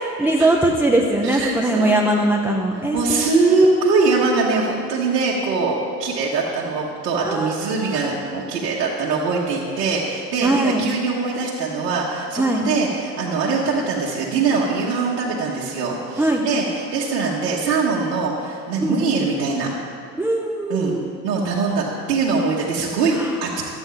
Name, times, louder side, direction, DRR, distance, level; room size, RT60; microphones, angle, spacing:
voice 1, 0.0-3.7 7.2-7.5 7.8-8.2 10.4-11.0 12.4-12.7 16.2-16.5 18.8-19.0 20.2-21.0 23.1-23.4, right 1 dB, 5° right, 0 dB, 0.5 m, -21 dB
voice 2, 1.2-1.9 2.9-19.7 20.7-20.9 21.2-23.5, right 4 dB, 70° right, -5 dB, 1.3 m, -22 dB
12.5 x 8.1 x 3.8 m, 2.4 s
figure-of-eight pair, 75°, 48 cm